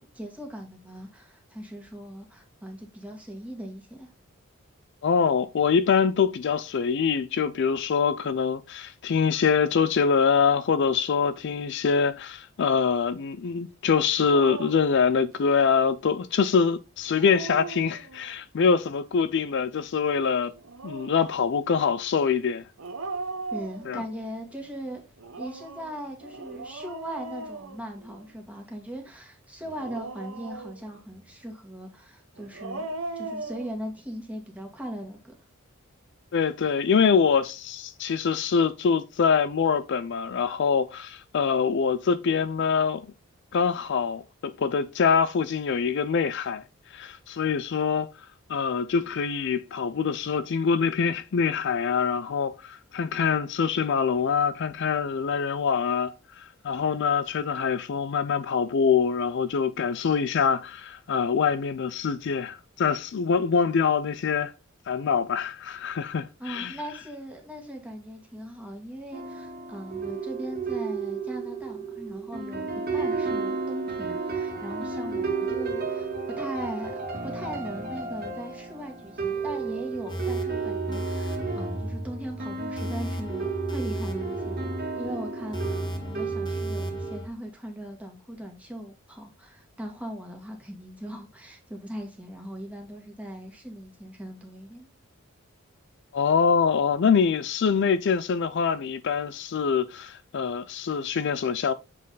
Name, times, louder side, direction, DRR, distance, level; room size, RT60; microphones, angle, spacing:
voice 1, 0.0-4.1 23.5-32.9 33.1-35.3 66.4-76.1 76.4-94.9, equal, 5° right, 1.7 m, -39 dB
voice 2, 5.0-20.5 20.8-22.6 23.9-24.0 36.3-43.1 43.5-46.6 46.9-48.1 48.5-64.5 64.9-66.7 96.1-101.7, left 6 dB, 55° left, 0.4 m, -24 dB
Dog, 14.3-14.9 17.0-18.4 20.5-21.3 22.8-24.3 25.2-28.4 29.6-31.0 32.4-33.7, right 3 dB, 75° right, 0.9 m, -38 dB
sound 1, 69.1-87.2, right 4 dB, 50° right, 1.7 m, -32 dB
sound 2, 80.1-87.3, equal, 20° left, 1.2 m, -35 dB
7.4 x 4.0 x 3.9 m
head